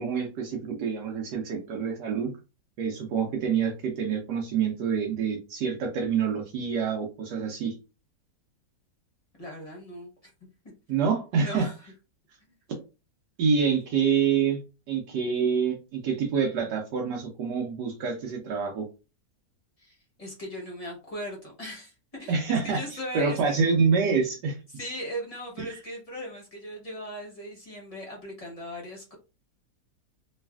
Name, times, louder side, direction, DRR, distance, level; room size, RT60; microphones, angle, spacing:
voice 1, 0.0-2.3 2.8-7.7 10.9-11.7 13.4-14.6 14.9-18.8 22.3-22.8 23.1-24.6, right 6 dB, 75° right, 1 dB, 1.2 m, -26 dB
voice 2, 9.4-10.3 11.4-11.9 13.7-13.8 19.8-23.6 24.7-29.1, equal, 35° left, -2 dB, 0.6 m, -38 dB
3.1 x 2.4 x 2.3 m, 0.30 s
omnidirectional pair, 1.9 m